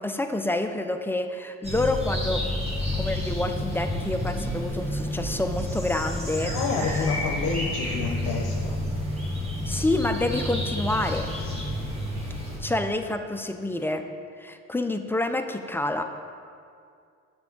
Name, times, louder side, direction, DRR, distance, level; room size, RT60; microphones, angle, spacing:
voice 1, 0.0-2.4 2.9-6.5 9.6-11.3 12.6-14.1 14.4-16.0, left 2 dB, 5° left, 6 dB, 0.4 m, -28 dB
sound 1, 1.6-12.6, left 1 dB, 20° right, 1.5 m, -30 dB
voice 2, 6.5-8.8, left 5 dB, 80° left, 1 dB, 0.6 m, -29 dB
6.9 x 5.8 x 3.8 m, 2.3 s
cardioid pair, 90°, 30 cm